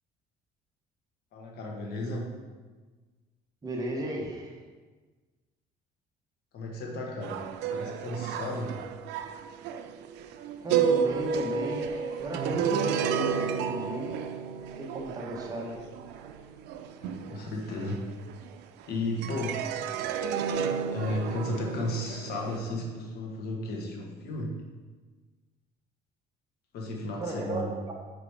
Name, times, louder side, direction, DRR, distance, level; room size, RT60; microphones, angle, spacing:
voice 1, 1.3-2.3 6.5-7.4 7.7-8.8 17.0-18.1 18.9-19.6 20.9-24.6 26.7-27.7, left 1 dB, 70° left, -1 dB, 1.4 m, -34 dB
voice 2, 3.6-4.6 10.6-14.2 14.8-15.8 27.2-27.9, right 1 dB, 20° right, -1 dB, 1.2 m, -35 dB
sound 1, 7.2-18.8 19.2-22.6, right 7 dB, 85° right, 0.4 m, -31 dB
4.9 x 4.8 x 4.9 m, 1.3 s
cardioid pair, 110°, 17 cm